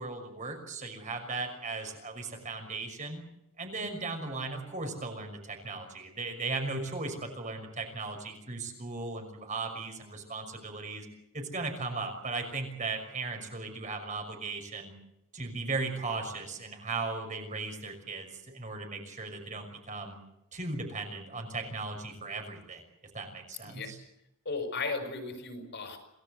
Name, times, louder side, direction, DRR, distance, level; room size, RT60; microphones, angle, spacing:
voice 1, 0.0-3.2 3.6-11.1 11.3-14.9 15.3-20.2 20.5-22.8 23.1-24.0, right 3 dB, 35° right, 4 dB, 5.9 m, -37 dB
voice 2, 24.5-26.0, left 4 dB, 50° left, 6 dB, 5.5 m, -35 dB
28.0 x 19.0 x 8.1 m, 0.87 s
head